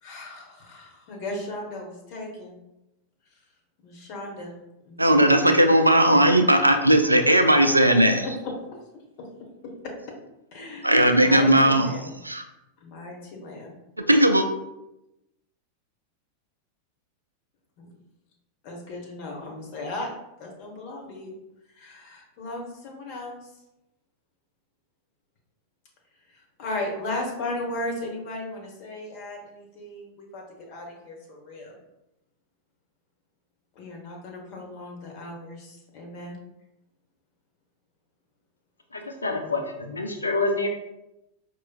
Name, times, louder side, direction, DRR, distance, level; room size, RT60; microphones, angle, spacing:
voice 1, 0.0-2.6 3.8-4.6 4.8-5.5 7.8-7.9 8.2-8.5 9.2-9.3 10.5-12.2 12.8-13.8 17.8-17.9 18.6-20.1 20.4-21.3 21.7-23.5 26.3-30.4 30.7-31.8 33.7-36.4, left 2 dB, 45° left, 0 dB, 1.0 m, -36 dB
voice 2, 5.0-8.2 10.8-11.9 12.2-12.5 14.1-14.5, right 1 dB, 85° right, 6 dB, 0.3 m, -17 dB
voice 3, 38.9-40.7, left 3 dB, 75° left, 4 dB, 0.4 m, -27 dB
4.7 x 3.0 x 2.3 m, 0.90 s
figure-of-eight pair, 90°, 0 cm